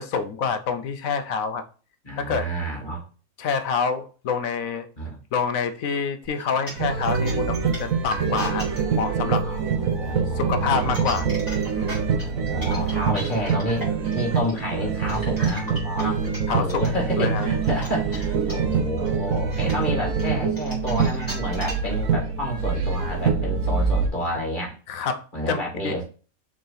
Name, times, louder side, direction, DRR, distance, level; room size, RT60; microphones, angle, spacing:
voice 1, 0.0-1.6 2.2-2.5 3.4-4.9 5.3-8.7 9.0-9.4 10.4-11.3 11.7-11.9 16.5-16.8 17.2-17.5 24.9-25.6 25.8-26.0, left 5 dB, 75° left, 9 dB, 1.1 m, -27 dB
voice 2, 2.0-3.0 5.0-5.2 9.4-11.3 12.2-13.9 14.1-24.8 25.3-26.0, equal, 35° left, -1 dB, 2.4 m, -30 dB
sound 1, 6.2-8.8 10.6-16.9 17.4-21.9, equal, 15° left, 3.2 m, -36 dB
sound 2, 6.8-24.1, right 5 dB, 75° right, 1.4 m, -25 dB
6.6 x 3.7 x 4.0 m, 0.36 s
omnidirectional pair, 1.5 m